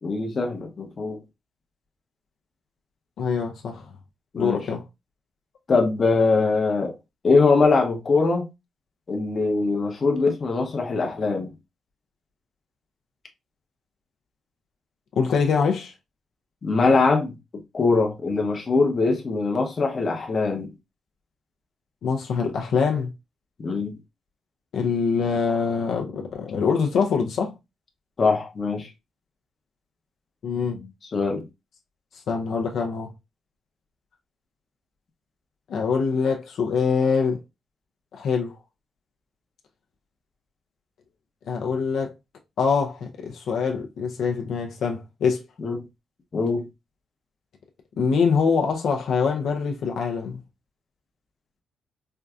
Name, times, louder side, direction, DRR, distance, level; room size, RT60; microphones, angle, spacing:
voice 1, 0.0-1.2 4.3-4.6 5.7-6.9 7.2-8.5 9.1-11.5 16.6-17.3 17.7-20.7 23.6-24.0 28.2-28.9 31.1-31.5 45.6-45.8 46.3-46.6, left 3 dB, 30° left, 0.7 m, -22 dB
voice 2, 3.2-3.9 4.4-4.8 15.2-15.9 22.0-23.1 24.7-27.5 30.4-30.9 32.3-33.1 35.7-37.4 38.1-38.5 41.5-42.1 42.6-45.4 48.0-50.4, left 5 dB, 65° left, 0.5 m, -24 dB
4.4 x 2.6 x 2.3 m
wide cardioid pair, 170°, 0 cm